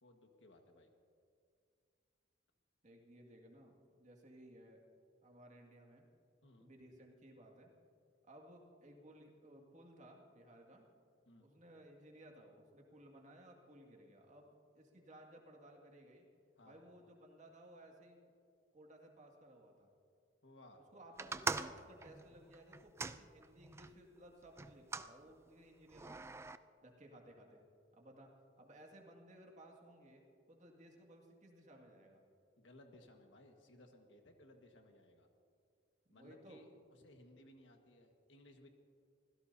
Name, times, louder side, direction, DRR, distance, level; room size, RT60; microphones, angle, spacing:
voice 1, 0.0-0.9 6.4-6.7 11.2-11.5 16.6-16.8 20.4-20.9 32.6-35.3 36.1-38.7, left 1 dB, 75° left, 3 dB, 1.6 m, -61 dB
voice 2, 2.8-4.8 5.2-6.1 6.6-7.7 8.3-10.9 11.4-16.3 16.6-18.2 18.7-19.9 20.9-26.4 26.8-27.6 27.9-28.3 28.6-32.2 36.1-36.6, right 1 dB, 40° right, 0 dB, 2.1 m, -59 dB
sound 1, 21.2-23.9 24.6-25.1 25.9-26.6, right 4 dB, 15° right, 0.3 m, -42 dB
25.5 x 16.0 x 2.8 m, 2.3 s
head